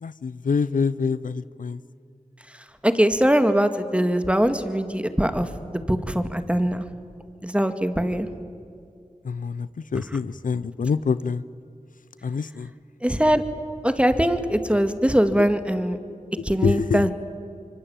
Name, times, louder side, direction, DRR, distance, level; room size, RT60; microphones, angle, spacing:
voice 1, 0.0-1.8 9.2-11.4 12.2-12.7 16.6-17.1, left 5 dB, 90° left, 17 dB, 0.6 m, -26 dB
voice 2, 2.8-6.8 7.4-8.3 13.0-13.4 13.8-16.0 16.4-17.1, equal, 10° right, 9 dB, 2.1 m, -22 dB
25.0 x 24.5 x 9.0 m, 2.5 s
cardioid pair, 45°, 13 cm